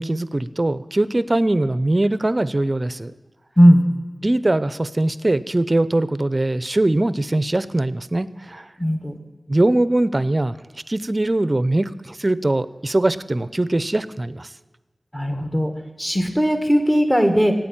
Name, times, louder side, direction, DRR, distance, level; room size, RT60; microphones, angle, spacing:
voice 1, 0.0-3.1 4.2-8.7 9.5-10.6 10.9-14.5, right 2 dB, 40° right, 15 dB, 0.6 m, -21 dB
voice 2, 8.8-9.2 15.1-15.7 16.0-17.5, equal, 10° left, 5 dB, 1.8 m, -17 dB
15.5 x 9.2 x 8.8 m, 1.2 s
wide cardioid pair, 55°, 0 cm